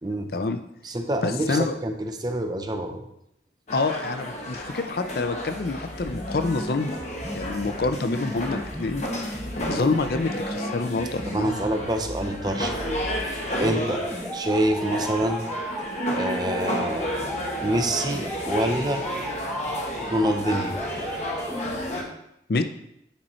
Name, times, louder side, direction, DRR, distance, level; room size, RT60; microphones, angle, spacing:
voice 1, 0.0-0.3 0.8-3.1 11.3-13.0 13.6-14.0 14.3-15.4 16.1-17.1 17.6-19.0 20.1-21.6, right 1 dB, 25° right, 5 dB, 0.6 m, -27 dB
voice 2, 1.2-1.7 3.7-7.0 7.3-9.0 9.3-11.6 22.5-22.6, left 3 dB, 55° left, 8 dB, 0.5 m, -27 dB
sound 1, 3.7-22.0, equal, 40° left, 1.2 m, -32 dB
sound 2, 6.0-22.0, equal, 5° left, 1.1 m, -35 dB
9.0 x 4.2 x 4.3 m, 0.78 s
head